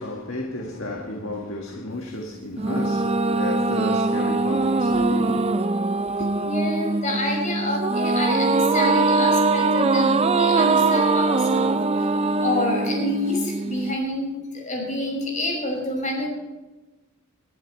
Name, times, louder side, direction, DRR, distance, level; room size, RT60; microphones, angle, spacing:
voice 1, 0.0-6.3, left 1 dB, 70° left, 1.9 m, -33 dB
sound 1, 2.6-14.0, right 3 dB, 30° right, 0.5 m, -22 dB
voice 2, 6.4-12.1 12.4-16.4, left 1 dB, 35° left, 5.9 m, -28 dB
21.5 x 11.5 x 3.3 m
head